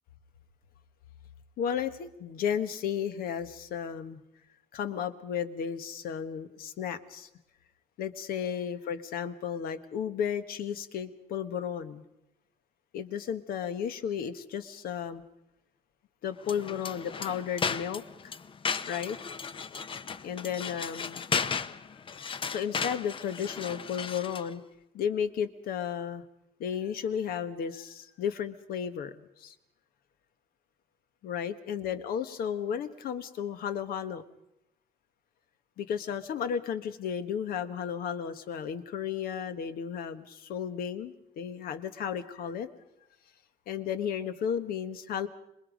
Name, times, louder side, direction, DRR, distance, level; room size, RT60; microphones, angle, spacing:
voice 1, 1.6-4.2 4.7-7.3 8.0-12.0 12.9-15.2 16.2-18.3 18.9-19.2 20.2-21.2 22.5-24.6 24.9-26.2 26.6-29.5 31.2-34.2 35.8-42.7 43.7-45.3, left 8 dB, 70° left, 10 dB, 1.5 m, -33 dB
sound 1, 16.4-24.5, left 6 dB, 35° left, 0.8 m, -35 dB
26.5 x 21.5 x 5.2 m, 0.85 s
cardioid pair, 115°, 16 cm